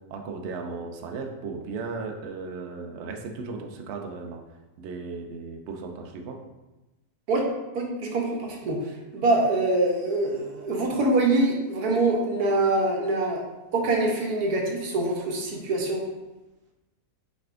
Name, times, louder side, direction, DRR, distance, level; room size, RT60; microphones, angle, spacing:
voice 1, 0.1-4.4 4.8-6.4, right 4 dB, 65° right, 3 dB, 0.7 m, -36 dB
voice 2, 7.7-13.4 13.7-16.0, right 2 dB, 85° right, 0 dB, 1.3 m, -24 dB
5.8 x 3.3 x 2.4 m, 1.1 s
omnidirectional pair, 1.6 m